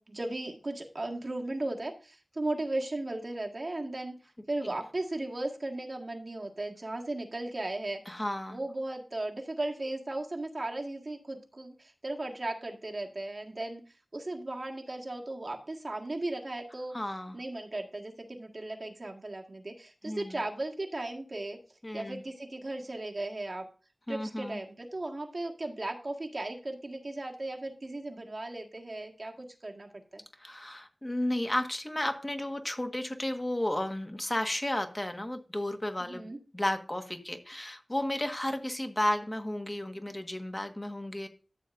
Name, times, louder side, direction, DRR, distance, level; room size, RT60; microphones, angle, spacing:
voice 1, 0.0-4.1 4.5-8.0 8.5-17.0 17.3-21.6 21.9-23.7 24.1-30.2 36.0-36.4, right 2 dB, 55° right, 1 dB, 1.8 m, -36 dB
voice 2, 8.1-8.6 16.9-17.4 20.0-20.4 21.8-22.2 24.1-24.6 30.4-36.3 36.5-41.3, left 1 dB, 25° left, 6 dB, 1.4 m, -33 dB
13.5 x 7.1 x 2.6 m, 0.36 s
wide cardioid pair, 50°, 0 cm